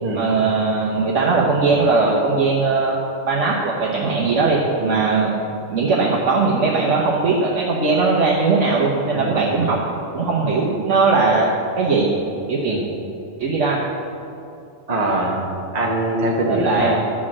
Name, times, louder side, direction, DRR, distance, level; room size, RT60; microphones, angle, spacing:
voice 1, 0.1-3.0 3.3-5.3 5.7-9.8 10.1-11.5 11.8-12.1 12.5-12.8 13.4-13.8 16.5-16.9, right 4 dB, 70° right, -3 dB, 1.4 m, -19 dB
voice 2, 9.1-9.6 12.7-12.9 14.9-15.5 15.7-17.0, right 1 dB, 35° right, -2 dB, 1.2 m, -23 dB
12.0 x 6.3 x 7.4 m, 2.7 s
omnidirectional pair, 1.3 m